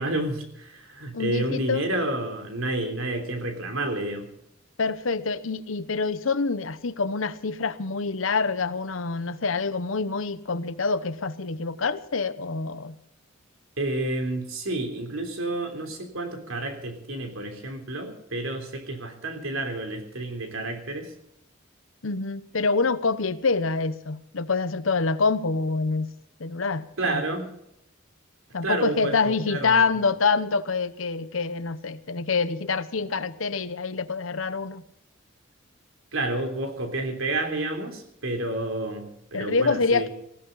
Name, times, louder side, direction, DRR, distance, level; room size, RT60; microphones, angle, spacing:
voice 1, 0.0-4.3 13.8-21.1 27.0-27.5 28.6-29.8 36.1-40.1, right 2 dB, 85° right, 5 dB, 3.4 m, -30 dB
voice 2, 1.1-1.9 4.8-13.0 22.0-26.1 26.4-27.2 28.5-34.8 39.3-40.1, left 4 dB, 80° left, 14 dB, 0.9 m, -26 dB
19.0 x 16.0 x 4.0 m, 0.77 s
head